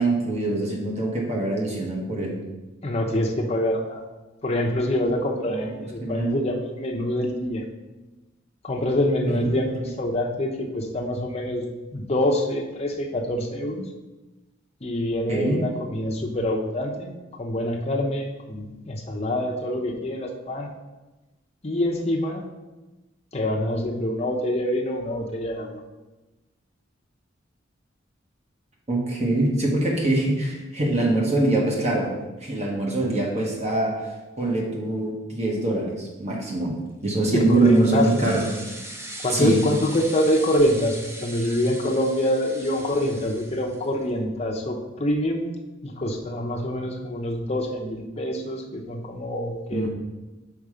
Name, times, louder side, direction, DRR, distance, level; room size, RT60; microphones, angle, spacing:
voice 1, 0.0-2.4 5.4-5.7 6.0-6.3 9.2-9.9 15.3-15.6 28.9-32.1 32.4-34.0 34.4-36.7 37.0-38.5 39.3-39.6 49.7-49.9, right 2 dB, 35° right, -2 dB, 1.2 m, -23 dB
voice 2, 2.8-4.0 4.4-7.6 8.6-11.6 11.9-13.9 14.8-20.7 21.6-22.4 23.3-25.8 37.3-38.3 39.2-45.5 45.8-49.9, left 1 dB, 30° left, 1 dB, 0.8 m, -25 dB
sound 1, 37.0-44.0, right 1 dB, 15° right, 0.6 m, -40 dB
5.7 x 4.3 x 5.0 m, 1.1 s
head